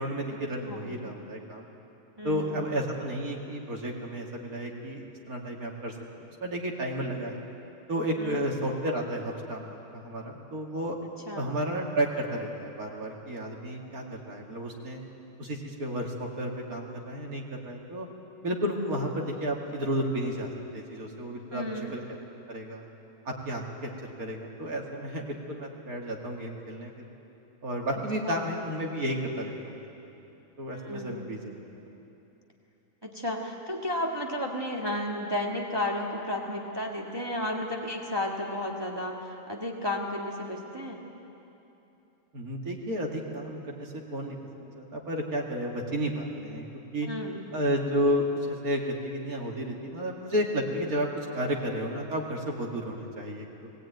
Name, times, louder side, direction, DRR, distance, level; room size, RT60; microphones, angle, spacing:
voice 1, 0.0-1.6 2.2-6.0 6.4-7.4 7.9-11.0 11.3-15.0 15.4-18.1 18.4-22.0 22.5-22.8 23.2-23.9 24.2-26.9 27.6-29.8 30.6-31.8 42.3-47.1 47.5-53.7, equal, 75° right, 0 dB, 2.8 m, -32 dB
voice 2, 0.7-1.2 2.2-2.7 8.2-8.4 11.3-11.6 21.5-21.9 28.2-28.6 30.7-31.5 33.0-41.0 47.0-47.6, left 1 dB, 15° right, -1 dB, 1.7 m, -33 dB
20.5 x 17.0 x 9.2 m, 3.0 s
omnidirectional pair, 1.5 m